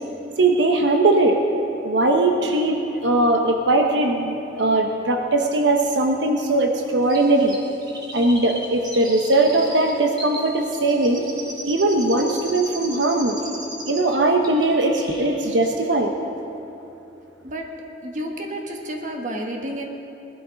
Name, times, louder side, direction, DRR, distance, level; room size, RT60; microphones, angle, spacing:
voice 1, 0.4-1.4 1.8-7.6 8.1-11.2 11.6-13.4 13.9-16.1, right 2 dB, 75° right, 3 dB, 1.0 m, -20 dB
Chirp tweet, 7.1-14.2 14.4-15.4 15.6-15.7, right 1 dB, 20° right, 1.7 m, -37 dB
voice 2, 18.0-19.8, right 1 dB, 40° right, 2 dB, 1.4 m, -30 dB
19.5 x 12.0 x 5.2 m, 2.9 s
head